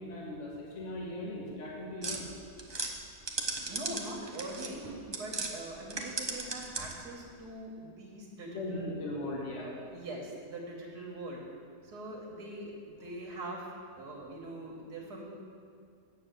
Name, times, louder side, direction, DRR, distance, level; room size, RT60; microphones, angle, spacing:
voice 1, 0.0-2.3 8.5-9.7, left 1 dB, 50° left, -3 dB, 1.8 m, -38 dB
sound 1, 2.0-5.5 5.8-7.1, right 3 dB, 30° right, 0.5 m, -37 dB
voice 2, 3.7-8.9 9.6-11.4 11.8-13.7 14.0-15.2, right 1 dB, 85° right, -2 dB, 2.0 m, -43 dB
8.1 x 6.8 x 8.1 m, 2.2 s
omnidirectional pair, 1.7 m